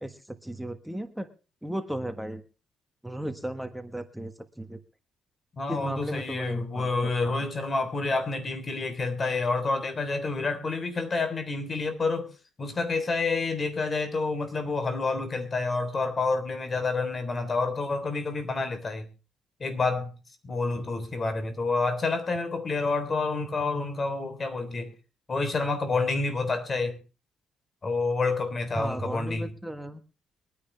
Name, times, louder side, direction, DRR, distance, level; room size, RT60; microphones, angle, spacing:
voice 1, 0.0-1.3 1.6-2.4 3.0-4.8 5.7-7.4 28.7-30.0, right 1 dB, 5° right, 1.4 m, -35 dB
voice 2, 5.6-12.3 12.6-19.1 19.6-20.1 20.4-24.9 25.3-27.0 27.8-29.5, left 3 dB, 35° left, 3.5 m, -28 dB
23.5 x 10.0 x 3.3 m
cardioid pair, 90°, 0 cm